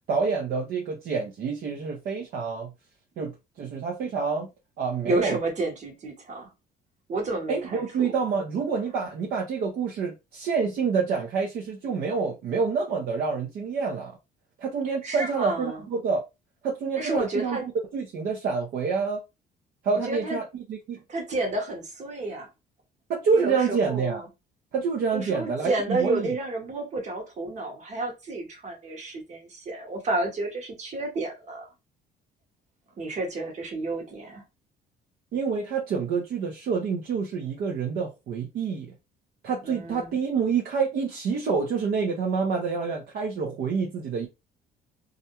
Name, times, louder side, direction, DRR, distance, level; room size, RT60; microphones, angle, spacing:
voice 1, 0.1-2.7 3.2-4.5 4.8-5.4 7.5-14.1 14.6-16.2 16.6-17.6 17.9-19.2 19.8-21.0 23.1-24.2 24.7-26.3 35.3-38.9 39.4-44.3, right 5 dB, 60° right, 0.6 m, -27 dB
voice 2, 5.0-6.5 7.1-8.2 8.8-9.0 14.8-15.9 17.0-17.7 19.9-20.4 21.1-22.5 23.3-24.3 25.1-31.7 33.0-34.4 39.6-40.2, right 2 dB, 45° right, 1.0 m, -31 dB
2.4 x 2.1 x 2.8 m
cardioid pair, 110°, 17 cm